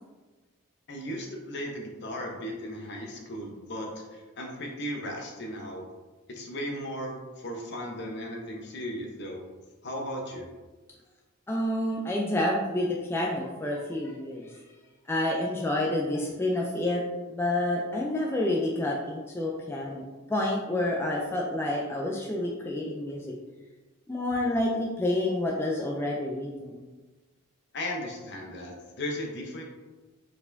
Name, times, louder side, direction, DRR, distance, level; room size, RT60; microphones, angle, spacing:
voice 1, 0.9-5.8 6.3-9.4 9.8-10.5 27.7-29.6, equal, 55° left, 1 dB, 0.8 m, -36 dB
voice 2, 11.5-14.6 15.1-17.0 17.3-23.3 24.1-26.8, left 1 dB, 10° left, -2 dB, 0.4 m, -29 dB
4.7 x 4.1 x 2.6 m, 1.2 s
head